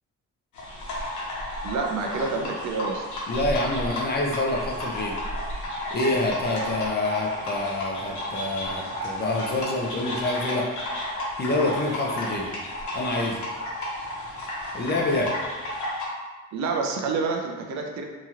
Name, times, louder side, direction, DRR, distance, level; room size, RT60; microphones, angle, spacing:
sound 1, 0.5-16.0, left 1 dB, 75° left, 1.0 m, -32 dB
voice 1, 1.6-3.0 16.5-18.0, right 4 dB, 65° right, 1 dB, 0.5 m, -28 dB
voice 2, 3.3-5.2 5.9-10.7 11.4-12.5 12.9-13.5 14.7-15.3, left 2 dB, 35° left, -2 dB, 0.6 m, -27 dB
3.0 x 2.9 x 2.4 m, 1.3 s
cardioid pair, 90°, 30 cm